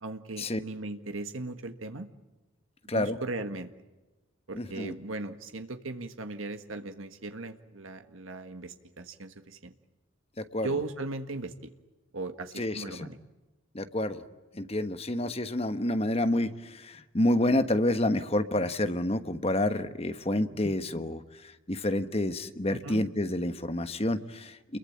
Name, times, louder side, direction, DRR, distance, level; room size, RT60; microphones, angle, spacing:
voice 1, 0.0-2.1 2.9-3.7 4.5-9.7 10.6-11.7 12.1-13.2 22.8-23.0, right 2 dB, 85° right, 8 dB, 1.6 m, -38 dB
voice 2, 4.5-4.9 10.5-10.8 12.6-13.1 13.7-14.2 14.5-24.8, left 1 dB, 30° left, 10 dB, 1.3 m, -29 dB
29.0 x 22.5 x 8.7 m, 1.1 s
head